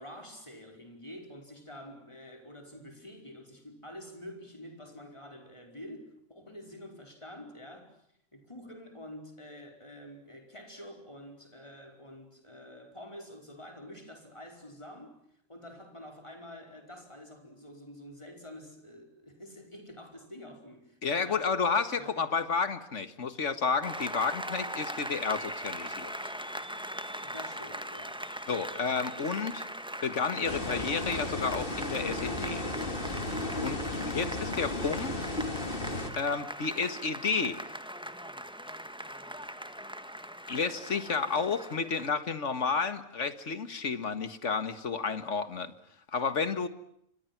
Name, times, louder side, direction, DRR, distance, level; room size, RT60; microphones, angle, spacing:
voice 1, 0.0-8.0 8.3-15.2 15.5-21.5 21.9-22.2 23.7-23.8 27.2-28.2, left 1 dB, 20° left, 5.0 m, -47 dB
voice 2, 21.0-26.3 28.5-29.6 30.0-32.7 33.6-35.3 36.1-37.6 40.5-45.7 46.1-46.7, left 5 dB, 65° left, 1.9 m, -31 dB
Applause, 23.8-42.1, equal, 5° right, 1.6 m, -40 dB
sound 1, 30.4-36.1, left 2 dB, 45° left, 3.0 m, -34 dB
28.0 x 25.5 x 6.0 m
omnidirectional pair, 1.4 m